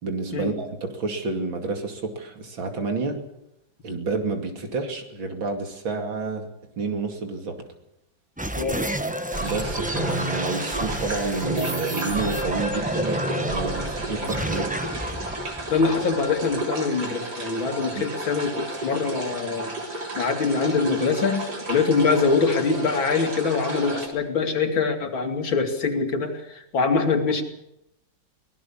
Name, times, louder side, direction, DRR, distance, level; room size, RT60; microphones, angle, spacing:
voice 1, 0.0-3.2 3.8-6.5 6.8-7.6 9.4-14.7 17.9-18.0, right 4 dB, 80° right, 4 dB, 3.4 m, -29 dB
sound 1, 8.4-16.6, right 1 dB, 10° right, 0.6 m, -29 dB
voice 2, 8.5-8.9 14.2-14.3 15.7-19.7 20.1-27.4, left 4 dB, 85° left, 5 dB, 3.3 m, -24 dB
sound 2, 9.3-24.1, right 2 dB, 55° right, 3.9 m, -33 dB
23.5 x 18.5 x 7.3 m, 0.83 s
omnidirectional pair, 2.1 m